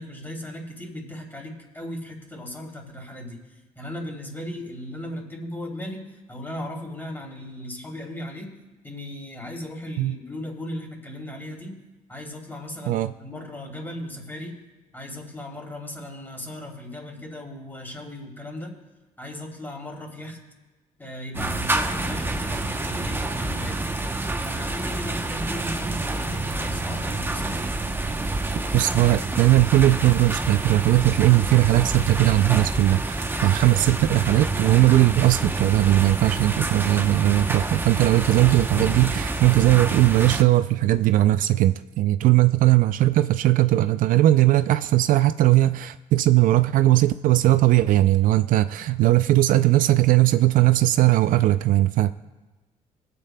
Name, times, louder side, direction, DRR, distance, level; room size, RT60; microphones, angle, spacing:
voice 1, 0.0-3.4 3.8-8.5 8.8-11.8 12.1-14.6 14.9-18.7 19.2-20.4 21.0-23.8 24.4-27.7, left 1 dB, 15° left, 0 dB, 3.0 m, -37 dB
sound 1, 21.3-40.4, right 2 dB, 15° right, 0.8 m, -28 dB
voice 2, 28.7-52.1, right 15 dB, 70° right, 12 dB, 0.4 m, -19 dB
23.5 x 8.4 x 2.2 m, 1.2 s
cardioid pair, 80°, 14 cm